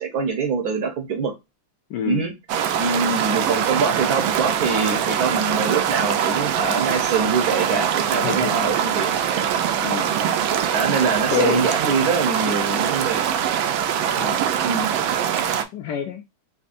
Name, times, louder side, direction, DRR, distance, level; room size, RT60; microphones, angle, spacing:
voice 1, 0.0-1.3 2.1-2.3 2.8-9.1 10.2-13.3 14.6-14.9, right 5 dB, 60° right, 1.1 m, -24 dB
voice 2, 1.9-2.3 2.9-3.2 8.2-8.8 9.8-10.1 11.0-11.7 14.2-14.5 15.7-16.2, left 10 dB, 75° left, 1.0 m, -28 dB
sound 1, 2.5-15.6, right 9 dB, 85° right, 1.4 m, -23 dB
4.2 x 2.7 x 2.4 m
omnidirectional pair, 2.2 m